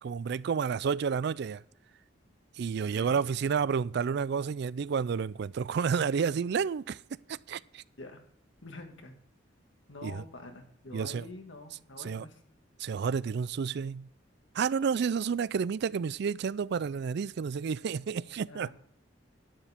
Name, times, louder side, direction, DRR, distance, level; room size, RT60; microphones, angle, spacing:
voice 1, 0.0-1.6 2.6-7.0 7.3-7.8 10.0-10.2 10.9-11.2 12.0-12.3 12.8-14.1 14.5-18.7, right 6 dB, 60° right, 0.4 m, -30 dB
voice 2, 2.8-3.2 8.0-8.2 8.6-9.2 9.9-12.4 18.5-18.7, left 2 dB, 80° left, 1.9 m, -46 dB
11.0 x 9.8 x 3.5 m
head